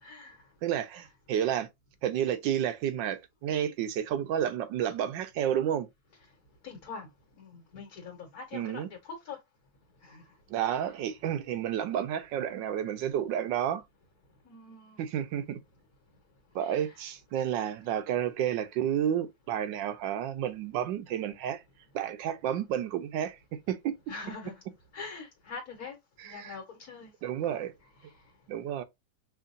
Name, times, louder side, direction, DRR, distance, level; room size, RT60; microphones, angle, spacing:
voice 1, 0.0-0.4 6.6-7.1 7.4-9.4 10.0-10.2 14.4-15.0 16.6-16.8 24.1-24.5 24.9-25.9 26.2-27.1, left 4 dB, 55° left, 1.4 m, -43 dB
voice 2, 0.6-1.7 2.0-5.9 8.5-8.9 10.5-13.8 15.0-15.6 16.5-21.6 21.9-23.4 23.7-24.0 26.2-26.6 27.2-27.7 28.5-28.8, right 10 dB, 80° right, 1.3 m, -31 dB
5.5 x 2.5 x 2.6 m
omnidirectional pair, 2.0 m